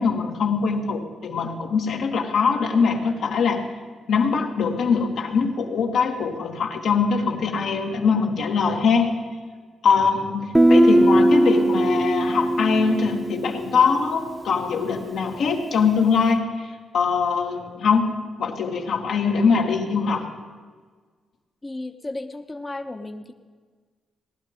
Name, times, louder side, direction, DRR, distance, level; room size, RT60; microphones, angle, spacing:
voice 1, 0.0-3.7 4.1-9.2 9.8-20.3, left 5 dB, 75° left, 1 dB, 1.7 m, -22 dB
Guitar, 10.5-14.2, right 1 dB, 10° right, 0.6 m, -19 dB
voice 2, 21.6-23.3, left 2 dB, 20° left, 5 dB, 0.9 m, -34 dB
17.5 x 11.5 x 5.1 m, 1.5 s
cardioid pair, 90°, 0 cm